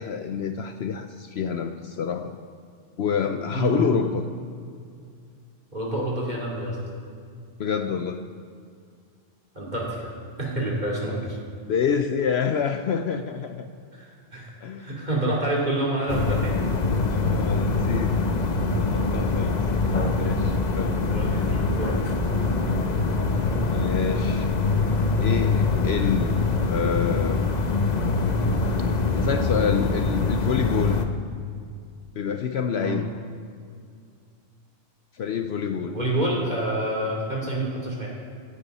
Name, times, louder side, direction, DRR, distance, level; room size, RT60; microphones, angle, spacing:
voice 1, 0.0-2.4 3.0-4.3 7.6-8.2 11.7-13.7 14.6-15.1 17.1-18.1 18.8-19.6 20.2-21.2 23.7-24.5 25.2-27.4 29.2-31.0 32.1-33.1 35.1-36.0, left 7 dB, 65° left, 7 dB, 0.8 m, -27 dB
voice 2, 5.7-6.8 9.6-10.1 10.4-11.4 13.9-14.5 14.8-16.7 19.9-20.0 21.0-22.0 32.8-32.9 35.8-38.1, right 1 dB, 35° right, -4 dB, 3.7 m, -28 dB
sound 1, 16.1-31.1, left 3 dB, 40° left, 0.9 m, -24 dB
16.0 x 14.5 x 4.1 m, 2.3 s
omnidirectional pair, 1.3 m